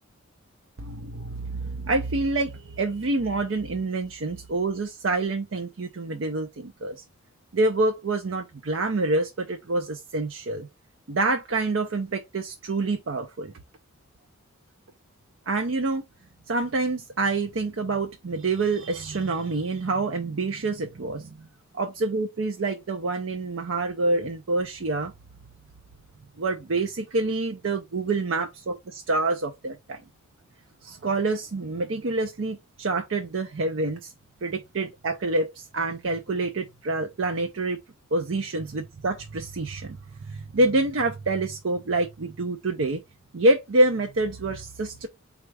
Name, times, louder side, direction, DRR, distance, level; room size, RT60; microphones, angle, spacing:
voice 1, 0.8-7.0 7.5-10.7 11.1-13.5 15.5-16.0 16.5-21.5 21.7-25.1 26.4-30.0 30.8-34.1 34.4-37.8 38.1-40.0 40.3-43.0 43.3-45.1, right 2 dB, 60° right, 0.5 m, -27 dB
4.3 x 2.4 x 4.6 m
head